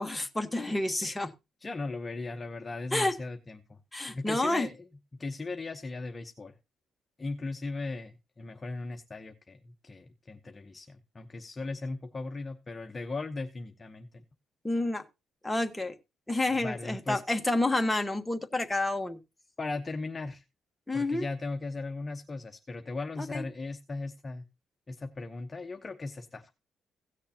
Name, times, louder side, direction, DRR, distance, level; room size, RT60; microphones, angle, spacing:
voice 1, 0.0-1.3 2.9-3.1 3.9-4.7 14.6-15.0 15.4-15.9 16.3-19.2 20.9-21.3 23.2-23.5, left 2 dB, 10° left, 1.3 m, -29 dB
voice 2, 1.6-3.8 4.1-4.9 5.2-6.6 7.2-14.2 16.6-17.2 19.6-20.4 20.9-24.5 24.9-26.5, left 3 dB, 25° left, 0.9 m, -38 dB
17.0 x 6.5 x 2.9 m
cardioid pair, 90°, 0 cm